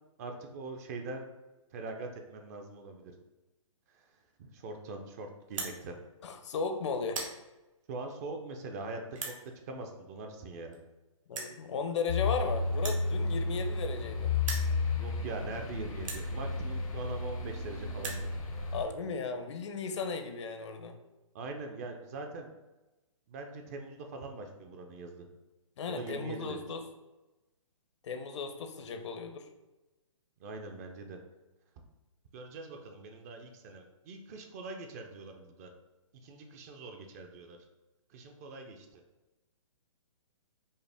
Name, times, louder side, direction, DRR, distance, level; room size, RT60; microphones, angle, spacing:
voice 1, 0.2-1.3 1.7-3.1 4.0-4.1 4.4-6.0 7.9-9.3 9.7-10.8 15.0-18.3 21.3-22.5 23.3-25.3 25.9-26.6 30.4-31.2 32.3-35.7 36.1-37.6 38.1-39.0, right 3 dB, 30° right, 4 dB, 0.4 m, -42 dB
sound 1, 5.4-5.8 6.4-6.6 6.9-7.4 8.1-8.2 9.1-9.4 10.4-10.5 10.7-10.8 11.3-11.6 12.7-14.1 14.3-14.7 15.4-15.5 16.0-16.3 17.2-17.3 17.5-17.6 17.8-18.3, right 4 dB, 70° right, 1.0 m, -39 dB
voice 2, 6.2-7.2 11.3-14.3 18.7-21.0 25.8-26.8 28.0-29.5, left 5 dB, 60° left, 7 dB, 0.6 m, -35 dB
sound 2, 12.1-18.8, left 3 dB, 85° left, 0.8 m, -33 dB
5.3 x 2.0 x 3.3 m, 1.1 s
hypercardioid pair, 140°, 17 cm